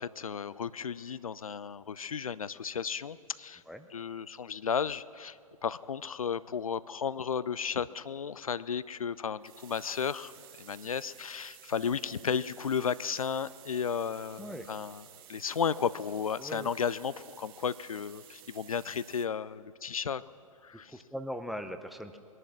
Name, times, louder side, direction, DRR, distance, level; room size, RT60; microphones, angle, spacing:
voice 1, 0.0-3.6 3.9-5.4 5.6-10.3 10.6-15.0 15.3-20.2 20.6-21.0, left 7 dB, 80° left, 17 dB, 0.4 m, -34 dB
sound 1, 9.4-19.2, right 10 dB, 40° right, 1.1 m, -54 dB
voice 2, 20.9-22.2, equal, ahead, 7 dB, 0.6 m, -39 dB
21.0 x 11.0 x 6.2 m, 2.4 s
figure-of-eight pair, 110°, 18 cm